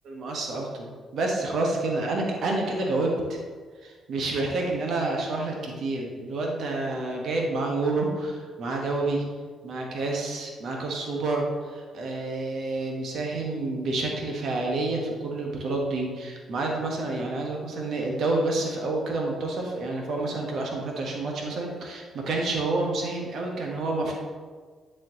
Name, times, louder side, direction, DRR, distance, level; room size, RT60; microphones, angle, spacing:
voice 1, 0.0-3.4 3.8-9.2 9.6-24.1, right 2 dB, 60° right, 0 dB, 1.3 m, -29 dB
10.0 x 4.4 x 2.9 m, 1.5 s
hypercardioid pair, 40°, 0 cm